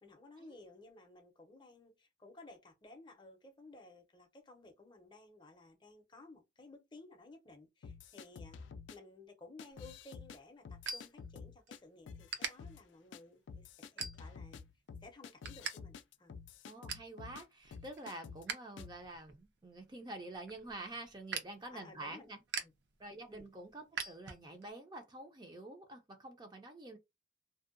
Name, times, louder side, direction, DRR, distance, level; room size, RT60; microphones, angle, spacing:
voice 1, 0.0-8.6 8.9-14.7 15.0-16.4 21.7-22.3 22.6-22.7 23.3-23.5, left 2 dB, 25° left, 0.5 m, -56 dB
sound 1, 7.8-9.0 9.6-10.4 10.6-11.8 12.1-12.8 13.1-13.2 13.5-17.4 17.7-18.5 18.8-19.0, left 5 dB, 85° left, 0.3 m, -50 dB
sound 2, 9.7-11.8 12.1-12.5 13.1-13.3 13.8-14.5 14.9-15.7 16.0-16.1 16.5-17.1 17.6-18.6 18.9-24.7, right 5 dB, 70° right, 0.5 m, -44 dB
voice 2, 16.6-22.4 23.0-27.0, right 2 dB, 25° right, 0.4 m, -48 dB
2.6 x 2.1 x 2.5 m
head